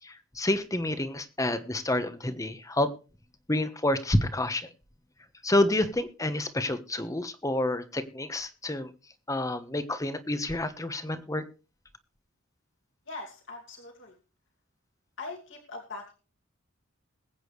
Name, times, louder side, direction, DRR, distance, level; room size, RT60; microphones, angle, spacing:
voice 1, 0.0-2.9 3.5-4.7 5.4-8.9 9.3-11.4, left 1 dB, 15° left, 11 dB, 1.2 m, -28 dB
voice 2, 13.1-14.2 15.2-16.0, left 3 dB, 65° left, 1 dB, 2.6 m, -41 dB
21.5 x 8.8 x 3.2 m, 0.33 s
head